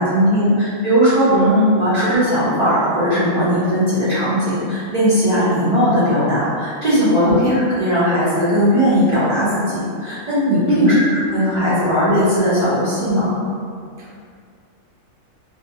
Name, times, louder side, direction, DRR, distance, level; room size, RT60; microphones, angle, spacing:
voice 1, 0.0-1.3 1.8-13.4, equal, 45° right, -13 dB, 0.5 m, -18 dB
voice 2, 1.3-1.7 7.2-7.6 10.7-11.0 14.0-14.2, equal, 65° right, -7 dB, 0.9 m, -18 dB
2.5 x 2.1 x 2.6 m, 2.2 s
omnidirectional pair, 1.4 m